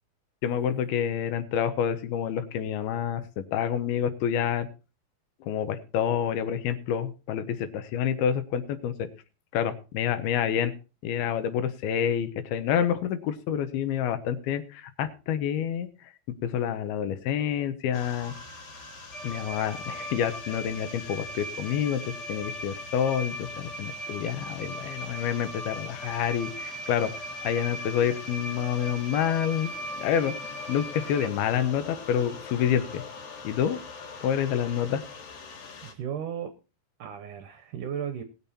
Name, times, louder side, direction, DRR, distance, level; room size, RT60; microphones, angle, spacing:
voice 1, 0.4-4.7 5.4-9.1 9.5-10.7 11.0-15.9 16.4-18.3 19.2-27.1 27.4-29.7 30.0-30.3 30.7-33.0 33.4-33.8 34.2-35.0, left 9 dB, 75° left, 11 dB, 2.8 m, -28 dB
sound 1, 17.9-35.9, left 5 dB, 50° left, 3.1 m, -45 dB
sound 2, 19.1-31.3, equal, 35° left, 2.0 m, -38 dB
voice 2, 35.8-36.5 37.0-38.2, right 8 dB, 70° right, 10 dB, 2.0 m, -35 dB
19.5 x 7.0 x 4.3 m, 0.31 s
omnidirectional pair, 4.7 m